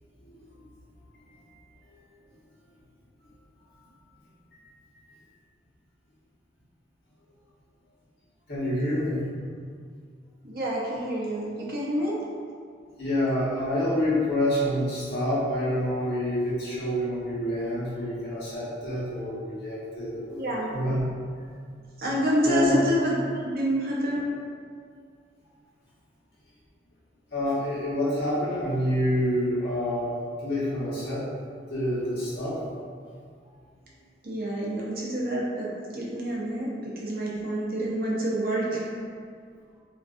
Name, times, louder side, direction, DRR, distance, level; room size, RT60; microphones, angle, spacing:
voice 1, 8.5-9.3 13.0-21.0 22.4-22.7 27.3-30.1 30.4-31.3 31.7-32.6, left 1 dB, 75° left, -10 dB, 0.9 m, -27 dB
voice 2, 10.4-12.2 20.4-20.7 22.0-23.1 23.5-24.2 34.2-35.7 35.9-38.8, equal, 55° right, -5 dB, 0.6 m, -27 dB
2.5 x 2.3 x 2.4 m, 2.1 s
head